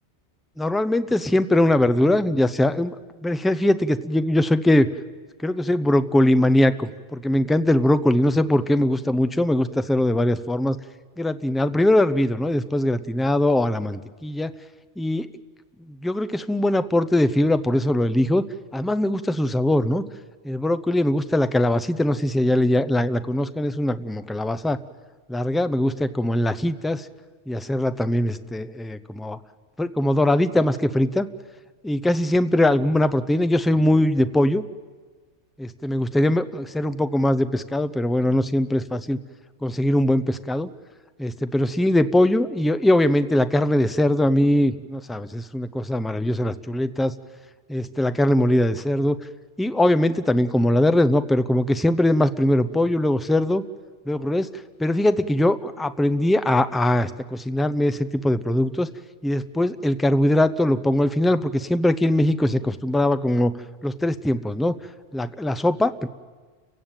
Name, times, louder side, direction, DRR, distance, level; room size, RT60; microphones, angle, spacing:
voice 1, 0.6-3.0 3.2-4.9 5.4-10.8 11.2-14.5 15.0-15.3 15.9-18.4 18.7-20.0 20.4-24.8 25.3-27.1 27.5-29.4 29.8-31.3 31.8-34.6 35.6-39.2 39.6-40.7 41.2-47.1 47.7-49.2 49.6-53.6 54.1-54.5 54.8-58.9 59.2-63.5 63.8-64.8 65.1-66.1, left 1 dB, ahead, 12 dB, 0.5 m, -21 dB
29.5 x 16.5 x 9.0 m, 1.4 s
omnidirectional pair, 1.2 m